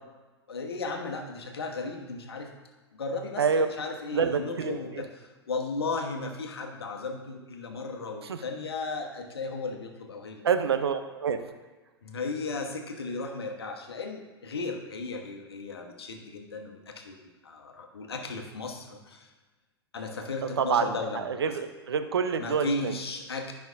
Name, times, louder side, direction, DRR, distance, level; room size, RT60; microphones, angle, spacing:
voice 1, 0.5-2.6 2.9-10.4 12.0-17.2 17.4-19.3 19.9-21.6 22.4-23.5, left 3 dB, 70° left, 3 dB, 1.1 m, -35 dB
voice 2, 4.1-4.8 8.2-8.4 10.4-11.5 20.6-21.0 21.2-22.9, right 6 dB, 70° right, 9 dB, 0.6 m, -27 dB
11.0 x 5.7 x 2.6 m, 1.3 s
figure-of-eight pair, 100°, 14 cm